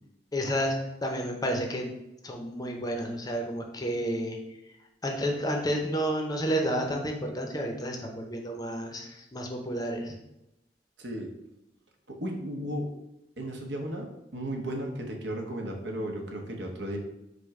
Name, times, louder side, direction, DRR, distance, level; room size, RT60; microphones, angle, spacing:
voice 1, 0.3-1.9 2.2-4.4 5.0-10.1, equal, 20° left, 2 dB, 0.6 m, -30 dB
voice 2, 11.0-11.3 12.1-12.9 13.4-14.1 14.3-17.0, right 1 dB, 80° right, 2 dB, 0.9 m, -34 dB
5.1 x 2.1 x 4.7 m, 0.89 s
head